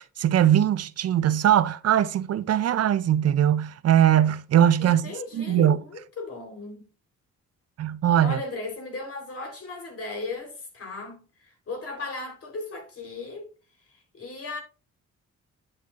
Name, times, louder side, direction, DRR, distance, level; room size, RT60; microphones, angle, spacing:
voice 1, 0.0-5.1 5.3-5.8 7.8-8.4, right 10 dB, 55° right, 0.6 m, -21 dB
voice 2, 4.8-6.9 8.2-13.5 13.9-14.6, left 3 dB, 50° left, 4.0 m, -36 dB
9.9 x 7.6 x 2.5 m
cardioid pair, 90°, 30 cm